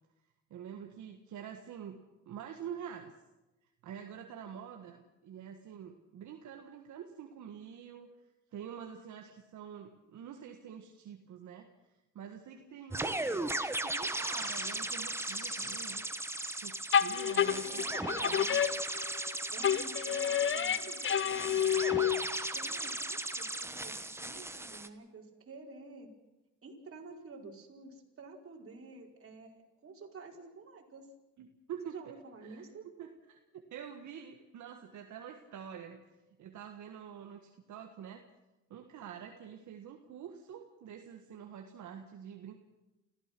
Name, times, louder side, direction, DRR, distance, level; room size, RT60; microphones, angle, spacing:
voice 1, 0.5-2.0 2.2-3.1 3.8-8.1 8.5-11.7 12.1-13.5 13.8-16.0 16.6-17.8 18.2-18.6 31.4-32.1 32.4-32.7 33.0-36.0 36.4-38.2 38.7-42.5, right 8 dB, 75° right, 4 dB, 1.7 m, -46 dB
sound 1, 12.9-24.9, right 1 dB, 10° right, 1.3 m, -37 dB
sound 2, 14.3-16.8 20.8-21.1, left 5 dB, 85° left, 6.4 m, -53 dB
sound 3, 16.9-19.3 19.6-22.5, left 9 dB, 40° left, 0.8 m, -30 dB
voice 2, 17.4-18.4 19.5-21.8 22.4-26.1 26.6-31.1 31.8-32.8, right 3 dB, 45° right, 0 dB, 4.9 m, -50 dB
29.0 x 15.0 x 6.1 m, 1.0 s
cardioid pair, 90°, 30 cm